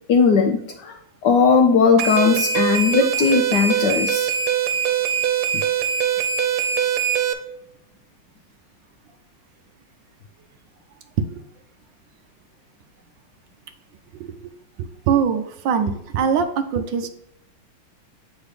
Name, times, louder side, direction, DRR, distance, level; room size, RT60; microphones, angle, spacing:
voice 1, 0.1-4.3, left 5 dB, 70° left, 4 dB, 1.0 m, -18 dB
sound 1, 2.0-7.3, right 8 dB, 90° right, 1.6 m, -22 dB
voice 2, 14.1-14.5 14.8-17.1, right 7 dB, 75° right, 9 dB, 1.2 m, -23 dB
8.3 x 4.0 x 3.2 m, 0.77 s
omnidirectional pair, 2.3 m